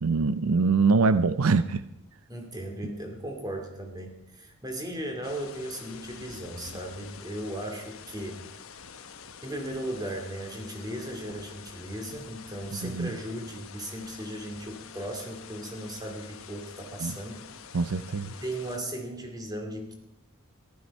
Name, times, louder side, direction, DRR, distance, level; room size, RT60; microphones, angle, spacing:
voice 1, 0.0-1.8 2.8-2.9 12.7-13.1 17.0-17.2 17.7-18.3, right 4 dB, 80° right, 14 dB, 0.6 m, -24 dB
voice 2, 2.3-8.4 9.4-17.5 18.3-19.9, right 1 dB, 20° right, 3 dB, 2.6 m, -37 dB
sound 1, 5.2-18.8, left 6 dB, 70° left, 1.0 m, -47 dB
14.5 x 12.5 x 5.5 m, 0.90 s
head